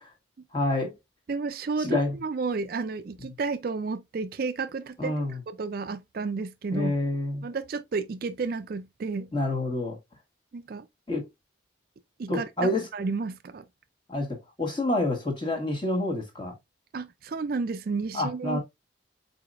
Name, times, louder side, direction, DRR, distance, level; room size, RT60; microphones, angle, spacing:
voice 1, 0.5-0.9 1.8-2.1 5.0-5.4 6.7-7.4 9.3-10.0 11.1-11.2 12.3-12.9 14.1-14.3 14.6-16.5 18.1-18.6, left 2 dB, 25° left, 1.4 m, -27 dB
voice 2, 1.3-5.2 5.5-6.9 7.4-9.3 10.5-10.9 12.2-13.6 16.9-18.6, right 4 dB, 50° right, 0.4 m, -32 dB
4.8 x 4.1 x 2.5 m
head